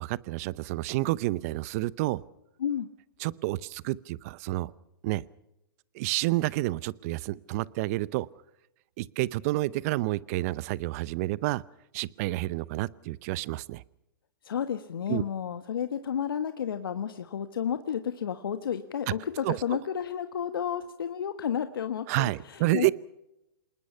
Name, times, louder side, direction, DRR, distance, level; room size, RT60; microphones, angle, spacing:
voice 1, 0.0-2.2 3.2-4.7 5.0-5.2 5.9-8.3 9.0-11.6 11.9-13.8 15.1-15.2 19.4-19.6 22.1-22.9, right 19 dB, 40° right, 21 dB, 0.7 m, -29 dB
voice 2, 14.4-22.9, left 8 dB, 70° left, 9 dB, 1.4 m, -31 dB
27.0 x 20.0 x 5.7 m, 0.89 s
hypercardioid pair, 125°, 12 cm